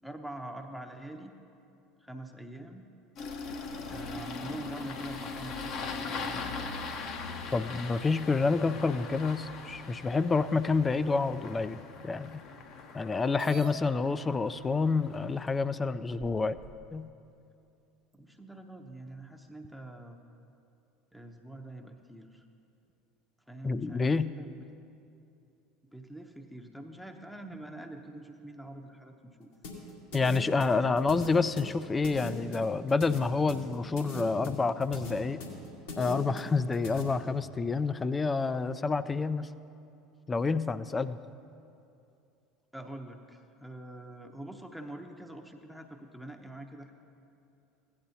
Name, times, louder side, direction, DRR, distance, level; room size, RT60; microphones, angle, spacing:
voice 1, 0.0-1.3 2.0-2.9 3.9-6.7 18.1-20.2 21.1-22.4 23.5-24.7 25.9-29.5 30.6-31.1 42.7-46.9, right 1 dB, ahead, 3 dB, 0.7 m, -45 dB
Engine starting, 3.2-15.6, left 4 dB, 55° left, 0.9 m, -41 dB
voice 2, 7.5-12.4 12.9-16.6 16.9-17.1 23.6-24.3 30.1-35.4 36.0-39.5 40.3-41.2, left 4 dB, 20° left, 15 dB, 0.4 m, -28 dB
sound 1, 13.4-13.8 14.7-14.8 15.5-15.6 16.2-16.9, right 6 dB, 50° right, 1.0 m, -44 dB
sound 2, 29.6-37.0, left 1 dB, 75° left, 2.1 m, -41 dB
16.0 x 10.0 x 2.8 m, 2.7 s
hypercardioid pair, 75°, 0 cm